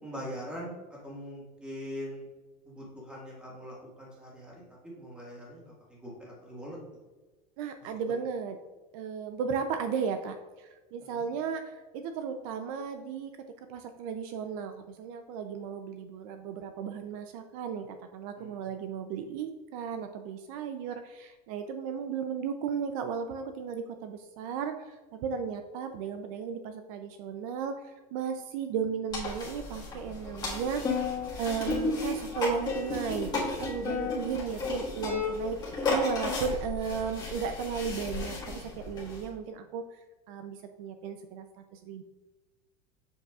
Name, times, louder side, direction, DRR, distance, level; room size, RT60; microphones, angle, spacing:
voice 1, 0.0-0.7 1.0-2.2 2.6-4.5 4.8-6.8 11.1-11.2 18.4-18.6, equal, 5° right, -5 dB, 1.7 m, -42 dB
voice 2, 7.6-8.6 8.9-13.3 13.7-17.9 18.1-30.8 31.4-40.0 40.3-42.0, right 6 dB, 60° right, 7 dB, 0.5 m, -35 dB
sound 1, 29.1-39.2, left 3 dB, 20° left, 1.6 m, -33 dB
7.4 x 5.4 x 2.3 m, 1.3 s
cardioid pair, 165°, 20 cm